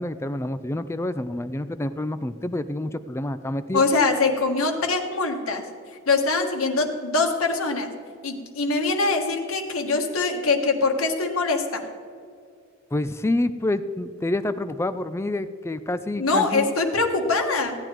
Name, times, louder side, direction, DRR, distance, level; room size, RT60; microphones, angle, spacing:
voice 1, 0.0-3.8 12.9-16.7, left 1 dB, 15° left, 12 dB, 0.4 m, -28 dB
voice 2, 3.7-5.6 6.1-7.9 8.2-11.9 16.2-17.8, left 3 dB, 85° left, 3 dB, 1.5 m, -23 dB
16.0 x 9.6 x 4.5 m, 2.2 s
head